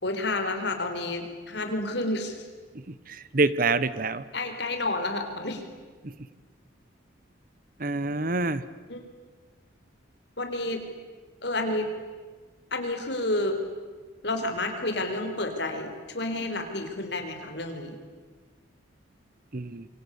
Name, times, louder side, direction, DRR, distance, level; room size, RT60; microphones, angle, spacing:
voice 1, 0.0-2.3 4.3-5.6 8.9-9.0 10.4-10.8 11.4-11.9 12.7-13.6 14.2-18.0, left 2 dB, 55° left, 5 dB, 4.3 m, -30 dB
voice 2, 3.1-4.2 7.8-8.6 19.5-19.9, right 3 dB, 45° right, 16 dB, 1.0 m, -26 dB
27.5 x 25.0 x 8.4 m, 1.4 s
head